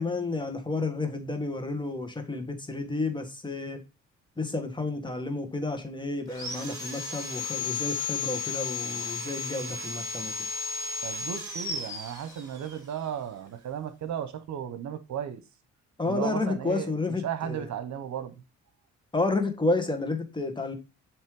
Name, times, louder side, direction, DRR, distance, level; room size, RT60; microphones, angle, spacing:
voice 1, 0.0-3.8 4.4-10.3 16.0-17.7 19.1-20.7, left 3 dB, 15° left, 1.6 m, -31 dB
Sawing, 6.3-12.8, left 5 dB, 10° right, 4.2 m, -34 dB
voice 2, 11.0-15.4 16.0-16.9 17.2-18.3, right 9 dB, 65° right, 1.1 m, -35 dB
7.3 x 3.2 x 4.8 m
cardioid pair, 90°, 30 cm